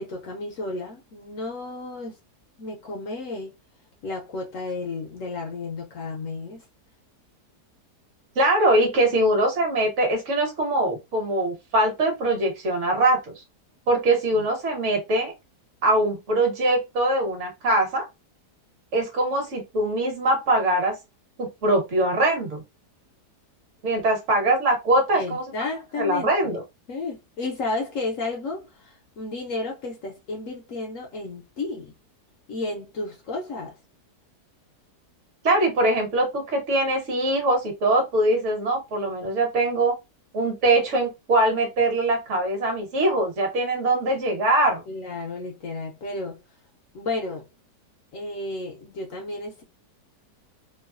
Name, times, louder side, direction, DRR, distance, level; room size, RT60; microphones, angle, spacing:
voice 1, 0.0-2.2 2.6-3.5 4.0-6.6 14.3-14.4 25.1-26.5 26.9-31.9 32.5-33.8 44.9-46.4 46.9-47.5 48.1-49.6, left 3 dB, 65° left, 0.8 m, -32 dB
voice 2, 8.3-13.2 13.9-15.3 15.8-18.0 18.9-20.9 21.4-22.6 23.8-25.4 26.0-26.6 35.4-40.0 40.3-44.8, right 1 dB, 50° right, 1.3 m, -22 dB
3.0 x 2.3 x 2.4 m
omnidirectional pair, 1.8 m